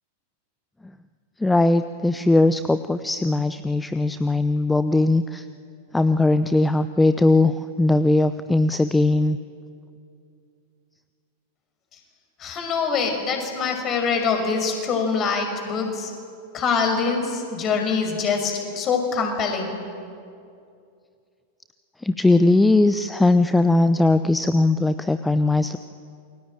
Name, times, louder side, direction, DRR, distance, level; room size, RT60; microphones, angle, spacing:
voice 1, 1.4-5.4 5.9-9.4 22.0-25.8, left 2 dB, 5° left, 12 dB, 0.8 m, -19 dB
voice 2, 12.4-16.1 16.5-19.8, left 5 dB, 30° left, 4 dB, 5.9 m, -24 dB
28.0 x 23.5 x 9.1 m, 2.4 s
figure-of-eight pair, 90°, 0 cm